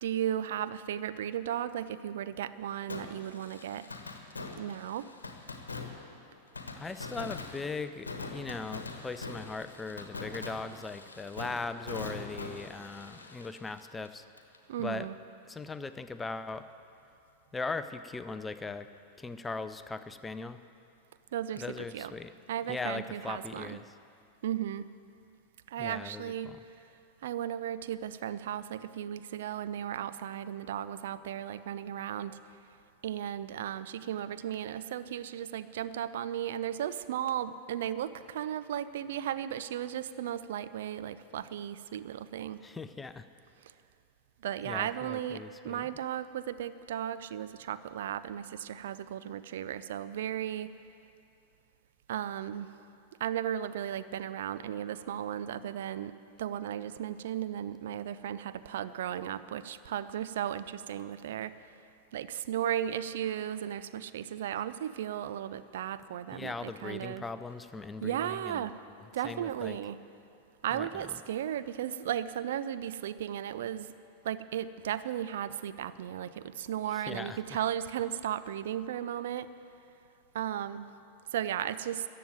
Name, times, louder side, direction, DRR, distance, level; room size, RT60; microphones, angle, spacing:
voice 1, 0.0-3.9 4.6-5.1 14.7-15.2 21.3-22.1 22.5-23.8 24.4-24.9 25.7-26.5 27.2-32.4 33.0-42.6 44.4-50.7 52.1-52.7 53.2-61.5 62.1-67.2 68.0-68.8 69.1-70.0 70.6-73.9 74.2-79.5 80.3-80.9 81.3-82.0, right 10 dB, 60° right, 13 dB, 0.4 m, -35 dB
Fireworks, 2.9-14.6 14.8-14.9 21.6-21.7, left 3 dB, 75° left, 1.1 m, -43 dB
voice 2, 6.8-14.2 14.8-15.1 15.5-16.7 17.5-18.9 19.2-20.6 21.6-22.3 22.7-23.8 25.8-26.6 42.6-43.3 44.6-45.9 66.3-68.7 69.2-69.8 70.7-71.0 77.1-77.6, left 3 dB, 10° left, 11 dB, 0.5 m, -39 dB
14.0 x 7.6 x 9.2 m, 2.6 s
figure-of-eight pair, 90°, 0 cm